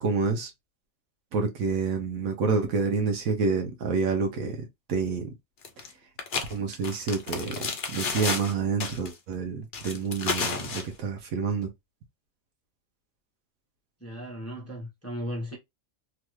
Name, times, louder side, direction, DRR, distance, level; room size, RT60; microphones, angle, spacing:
voice 1, 0.0-0.5 1.3-5.3 6.5-11.7, right 5 dB, 75° right, 1.2 m, -28 dB
sound 1, 5.6-5.9 6.2-8.5 8.8-9.1 9.7-10.8, left 5 dB, 50° left, 0.7 m, -31 dB
voice 2, 14.0-15.6, equal, 10° left, 0.9 m, -36 dB
3.1 x 2.4 x 3.0 m
omnidirectional pair, 1.5 m